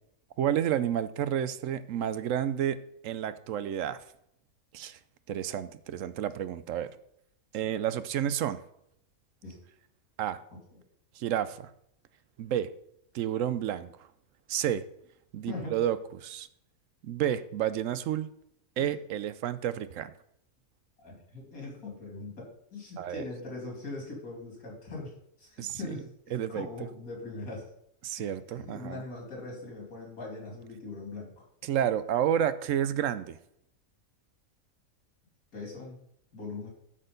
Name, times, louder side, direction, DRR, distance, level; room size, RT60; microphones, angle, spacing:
voice 1, 0.4-2.8 3.0-4.0 4.7-5.0 5.3-6.9 7.5-8.6 10.2-10.4 11.1-11.7 12.4-12.7 13.1-14.1 14.5-14.8 15.3-16.5 17.0-18.3 18.8-20.1 23.0-23.3 25.6-26.0 26.3-26.7 28.0-29.0 31.6-33.4, right 10 dB, 70° right, 14 dB, 0.9 m, -30 dB
voice 2, 21.0-25.1 25.4-27.7 28.2-31.4 35.5-36.0 36.3-36.7, left 3 dB, 85° left, -1 dB, 3.4 m, -41 dB
12.5 x 4.4 x 5.1 m, 0.73 s
omnidirectional pair, 1.5 m